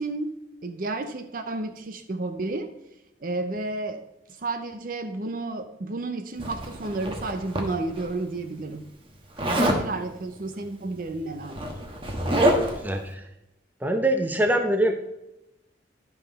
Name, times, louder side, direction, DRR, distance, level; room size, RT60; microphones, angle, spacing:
voice 1, 0.0-2.7 3.2-4.1 4.4-8.9 9.6-11.6, right 2 dB, 50° right, 7 dB, 0.6 m, -32 dB
Zipper (clothing), 6.4-8.1 9.4-9.9 11.0-11.1 11.4-12.9, right 1 dB, 30° right, 1.2 m, -26 dB
voice 2, 12.1-13.2 13.8-14.9, right 1 dB, 10° right, 5 dB, 0.8 m, -25 dB
12.0 x 5.6 x 4.1 m, 0.92 s
head